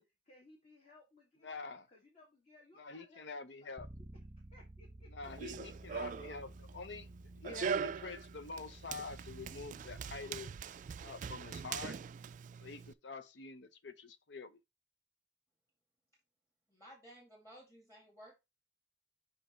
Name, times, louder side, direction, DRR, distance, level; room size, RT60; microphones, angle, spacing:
voice 1, 0.0-3.3 3.6-3.8 4.1-5.3 5.6-5.7, left 2 dB, 40° left, 2.1 m, -63 dB
voice 2, 1.4-1.8 2.8-3.9 5.1-7.1 7.4-10.5 11.0-12.0 12.6-14.6, left 4 dB, 70° left, 0.7 m, -46 dB
Bass guitar, 3.8-10.0, right 1 dB, 20° right, 0.8 m, -54 dB
Run, 5.2-12.9, right 6 dB, 45° right, 0.3 m, -42 dB
voice 3, 16.7-18.4, equal, 15° left, 2.2 m, -56 dB
5.4 x 5.2 x 4.4 m
head